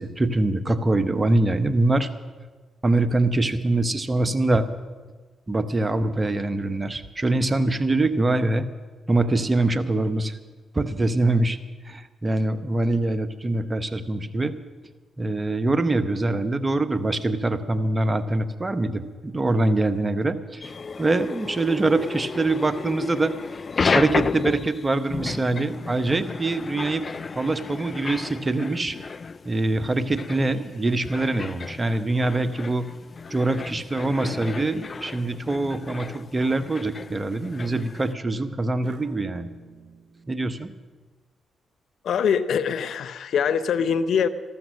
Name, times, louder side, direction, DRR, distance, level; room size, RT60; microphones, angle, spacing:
voice 1, 0.0-2.1 2.8-4.7 5.5-8.7 9.1-10.3 10.7-11.6 11.8-14.5 15.2-20.7 21.0-23.3 23.9-27.0 27.3-29.0 29.4-32.9 33.3-39.5 40.3-40.7, right 2 dB, 30° right, 11 dB, 1.1 m, -24 dB
sound 1, 20.6-38.1, left 5 dB, 45° left, 0.4 m, -32 dB
sound 2, 38.8-40.7, right 4 dB, 45° right, 1.6 m, -47 dB
voice 2, 42.0-44.3, left 7 dB, 70° left, 13 dB, 0.7 m, -23 dB
14.0 x 13.0 x 6.5 m, 1.3 s
supercardioid pair, 50°, 0 cm